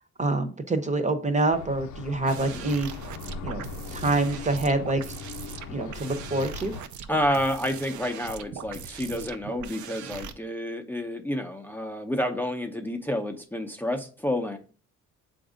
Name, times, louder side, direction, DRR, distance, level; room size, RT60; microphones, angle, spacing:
voice 1, 0.2-2.9 3.4-3.6 3.9-5.1 5.7-6.7, right 2 dB, 25° right, 7 dB, 0.9 m, -26 dB
sound 1, 1.5-6.8, left 5 dB, 75° left, 0.8 m, -40 dB
sound 2, 2.3-10.3, right 7 dB, 70° right, 0.7 m, -40 dB
voice 2, 7.1-14.6, left 1 dB, 5° left, 4 dB, 0.8 m, -29 dB
7.6 x 2.6 x 5.0 m, 0.39 s
cardioid pair, 90°, 30 cm